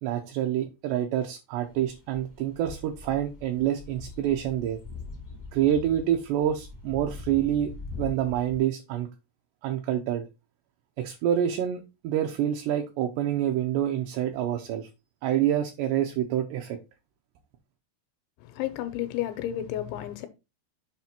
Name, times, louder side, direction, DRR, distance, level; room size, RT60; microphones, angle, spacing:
voice 1, 0.0-4.8 5.5-7.7 8.0-9.1 9.6-10.3 11.0-14.9 15.2-16.8, right 11 dB, 75° right, 2.6 m, -27 dB
sound 1, 1.6-8.6, left 3 dB, 20° left, 0.4 m, -42 dB
voice 2, 18.4-20.3, left 12 dB, 80° left, 2.8 m, -32 dB
7.5 x 3.3 x 5.8 m
omnidirectional pair, 5.5 m